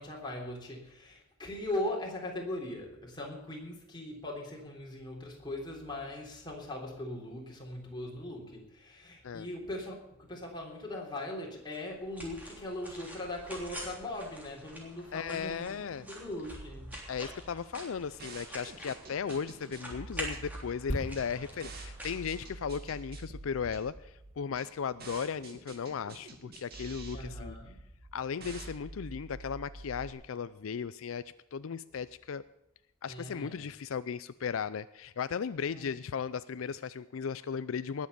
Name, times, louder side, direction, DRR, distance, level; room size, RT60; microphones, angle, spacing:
voice 1, 0.0-16.9 27.1-27.8 33.1-33.7 35.7-36.0, left 1 dB, 20° left, -1 dB, 3.4 m, -40 dB
sound 1, 11.7-23.0, equal, 10° right, 3.2 m, -46 dB
voice 2, 15.1-16.1 17.1-27.6 28.1-31.2 31.5-32.4 33.0-38.1, left 6 dB, 75° left, 15 dB, 0.4 m, -36 dB
sound 2, 16.5-30.1, right 2 dB, 50° right, 2.3 m, -47 dB
sound 3, 20.9-24.5 24.8-25.0, equal, 60° left, 2.1 m, -42 dB
19.5 x 7.5 x 6.9 m, 0.86 s
head